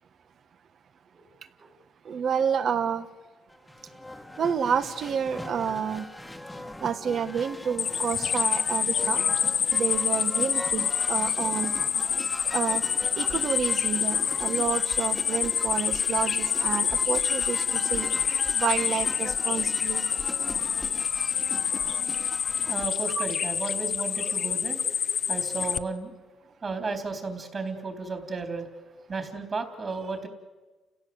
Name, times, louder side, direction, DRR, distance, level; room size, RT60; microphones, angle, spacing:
voice 1, 2.0-3.1 4.4-6.1 6.8-9.2 9.7-11.7 12.4-12.8 13.2-18.1 18.5-20.1 23.1-23.2, right 7 dB, 60° right, 11 dB, 1.5 m, -29 dB
sound 1, 3.5-22.9, left 1 dB, 10° left, 1.5 m, -40 dB
sound 2, 7.8-25.8, left 7 dB, 55° left, 0.8 m, -27 dB
voice 2, 22.7-24.8 25.3-26.1 26.6-28.7 29.1-30.3, right 3 dB, 40° right, 5 dB, 3.9 m, -33 dB
30.0 x 16.5 x 8.0 m, 1.2 s
cardioid pair, 90°, 0 cm